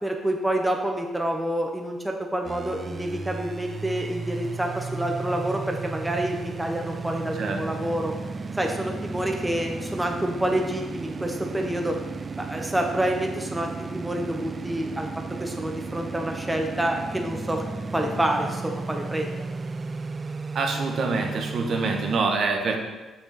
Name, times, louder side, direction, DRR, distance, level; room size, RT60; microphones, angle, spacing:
voice 1, 0.0-8.1 8.5-12.0 12.4-15.1 15.4-17.6 17.9-19.3, right 1 dB, 10° right, 2 dB, 0.8 m, -28 dB
sound 1, 2.4-22.2, right 4 dB, 35° right, 0.3 m, -34 dB
voice 2, 20.5-22.8, right 4 dB, 60° right, 2 dB, 1.1 m, -25 dB
6.4 x 6.0 x 4.1 m, 1.2 s
cardioid pair, 90°, 0 cm